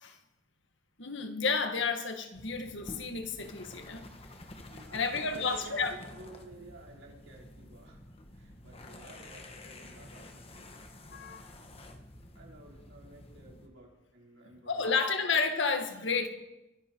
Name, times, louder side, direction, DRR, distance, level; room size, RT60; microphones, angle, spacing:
voice 1, 1.0-4.0 4.9-5.9 11.1-11.5 14.7-16.3, left 4 dB, 70° left, 6 dB, 1.8 m, -31 dB
sound 1, 2.3-13.7, left 1 dB, 30° left, 1.4 m, -50 dB
voice 2, 4.7-8.0 8.3-11.7 12.3-15.0, right 1 dB, 80° right, -2 dB, 4.9 m, -53 dB
23.5 x 12.5 x 4.7 m, 0.96 s
head